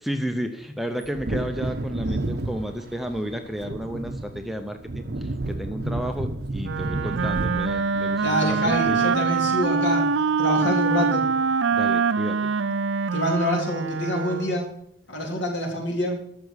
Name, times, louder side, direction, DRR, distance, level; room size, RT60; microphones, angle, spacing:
voice 1, 0.0-9.1 11.7-12.5 15.2-15.4, equal, ahead, 6 dB, 0.7 m, -32 dB
Wind / Thunder, 1.0-9.3 9.6-9.7, right 2 dB, 55° right, 0.9 m, -31 dB
Wind instrument woodwind instrument, 6.6-14.7, right 5 dB, 75° right, 0.5 m, -24 dB
voice 2, 8.2-10.1 10.4-11.2 13.1-14.7 15.1-16.2, left 1 dB, 65° left, 1 dB, 3.4 m, -26 dB
12.0 x 7.0 x 8.0 m, 0.69 s
head